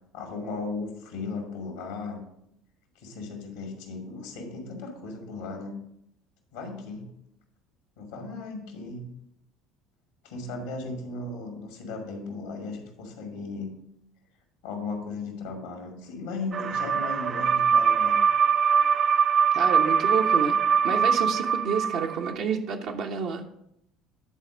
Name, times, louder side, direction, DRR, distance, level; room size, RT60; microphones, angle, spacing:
voice 1, 0.1-2.2 3.0-5.7 6.5-7.1 8.0-9.1 10.2-13.7 14.6-18.2, left 3 dB, 80° left, 2 dB, 2.2 m, -36 dB
sound 1, 16.5-22.3, right 7 dB, 40° right, 0.4 m, -22 dB
voice 2, 19.5-20.6 20.8-23.4, right 6 dB, 65° right, 1 dB, 0.9 m, -29 dB
9.9 x 4.2 x 5.1 m, 0.76 s
hypercardioid pair, 70°, 0 cm